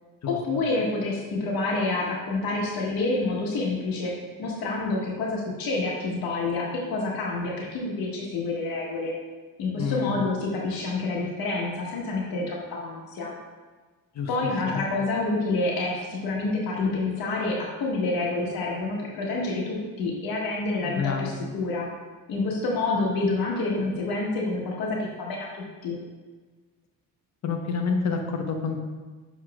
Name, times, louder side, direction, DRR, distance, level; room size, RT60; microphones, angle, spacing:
voice 1, 0.2-4.1 4.4-9.1 9.6-13.3 14.3-21.9 22.3-26.0, left 3 dB, 90° left, -2 dB, 1.3 m, -28 dB
voice 2, 9.8-10.2 14.1-14.3 14.7-14.8 20.8-21.3 27.4-28.8, left 5 dB, 50° left, 3 dB, 1.0 m, -28 dB
7.1 x 6.2 x 2.4 m, 1.4 s
cardioid pair, 105°, 35 cm